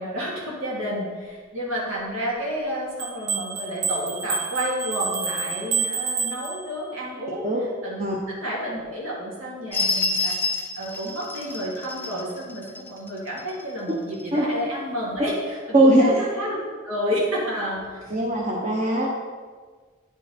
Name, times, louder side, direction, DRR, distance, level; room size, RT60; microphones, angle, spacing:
voice 1, 0.0-10.4 10.8-16.6 16.8-18.2, equal, 85° right, -5 dB, 2.6 m, -30 dB
sound 1, 3.0-7.0, right 5 dB, 65° right, 0.9 m, -29 dB
sound 2, 9.7-13.6 14.2-14.3, left 3 dB, 10° left, 0.5 m, -28 dB
voice 2, 15.7-16.0 18.1-19.1, right 1 dB, 35° right, -3 dB, 0.9 m, -19 dB
10.0 x 4.8 x 4.3 m, 1.5 s
head